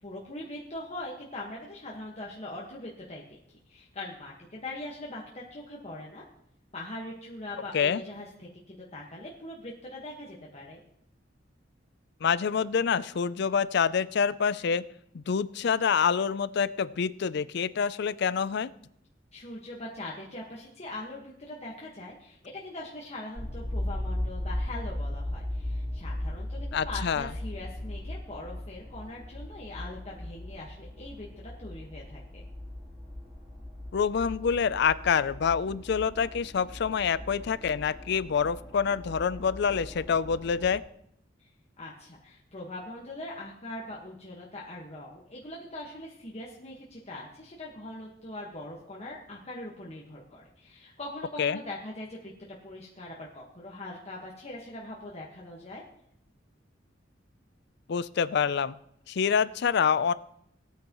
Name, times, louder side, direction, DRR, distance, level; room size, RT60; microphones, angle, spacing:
voice 1, 0.0-3.4 3.7-6.2 6.7-10.8 19.3-32.4 41.8-52.3 52.6-55.8, left 1 dB, 35° left, -4 dB, 1.5 m, -42 dB
voice 2, 12.2-14.8 15.1-18.7 26.7-27.3 33.9-40.8 51.4-51.6 57.9-58.7 59.1-60.1, left 6 dB, 65° left, 17 dB, 0.4 m, -26 dB
sound 1, 23.4-40.8, left 1 dB, 10° right, 3.5 m, -38 dB
18.0 x 9.1 x 3.0 m, 0.73 s
head